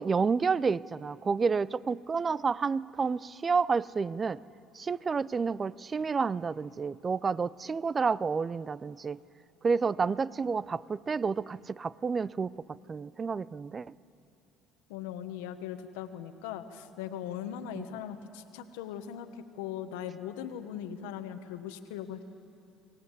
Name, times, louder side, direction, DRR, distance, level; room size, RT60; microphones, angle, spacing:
voice 1, 0.0-4.4 4.7-9.2 9.6-13.9 17.8-17.9, right 5 dB, 30° right, 21 dB, 0.4 m, -30 dB
voice 2, 14.9-22.2, left 9 dB, 90° left, 9 dB, 1.1 m, -39 dB
22.0 x 18.5 x 8.3 m, 2.7 s
supercardioid pair, 85°, 0 cm